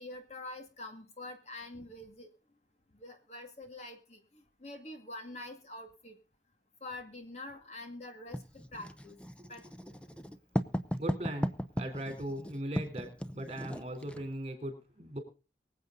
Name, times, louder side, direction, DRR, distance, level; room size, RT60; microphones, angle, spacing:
voice 1, 0.0-2.3 3.0-6.2 6.8-9.2 9.5-9.6, left 2 dB, 40° left, 4 dB, 2.2 m, -46 dB
Writing, 8.3-14.3, equal, 5° left, 0.7 m, -37 dB
voice 2, 11.0-15.2, right 1 dB, 35° right, 6 dB, 3.7 m, -39 dB
24.0 x 8.1 x 3.9 m, 0.35 s
head